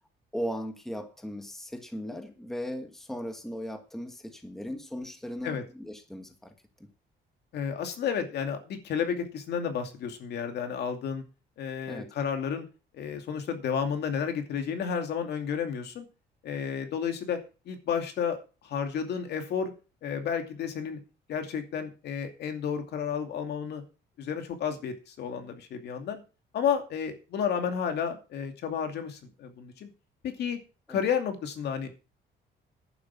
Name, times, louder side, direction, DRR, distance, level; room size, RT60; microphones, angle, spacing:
voice 1, 0.3-6.5 6.8-6.9 11.8-12.1 30.9-31.0, equal, ahead, 6 dB, 1.4 m, -37 dB
voice 2, 7.5-11.2 11.6-12.7 12.9-16.1 16.4-17.4 17.7-18.4 18.6-19.7 20.0-21.0 21.3-23.8 24.2-26.2 26.5-29.9 30.2-30.6 30.9-32.0, left 7 dB, 60° left, 6 dB, 2.6 m, -31 dB
11.0 x 9.6 x 5.8 m, 0.32 s
cardioid pair, 170°, 19 cm